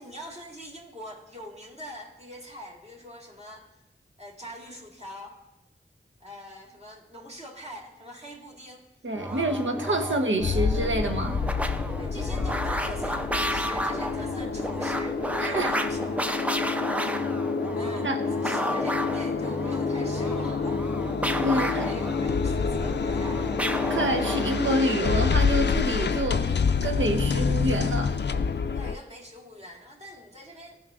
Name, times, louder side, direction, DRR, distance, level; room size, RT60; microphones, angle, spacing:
voice 1, 0.0-3.7 4.2-5.4 6.2-8.8 9.3-10.3 12.0-15.2 15.5-16.0 17.7-18.1 18.4-20.8 21.5-23.4 28.7-30.8, equal, 30° right, -1 dB, 1.8 m, -43 dB
voice 2, 9.0-11.4 15.4-15.7 18.0-18.2 21.4-21.8 23.9-26.5 26.8-28.2, right 1 dB, 75° right, 4 dB, 0.9 m, -27 dB
sound 1, 9.1-24.8, equal, 5° right, 0.5 m, -32 dB
sound 2, 10.4-29.0, left 5 dB, 60° left, 0.4 m, -28 dB
16.0 x 5.5 x 2.4 m, 1.0 s
wide cardioid pair, 40°, 20 cm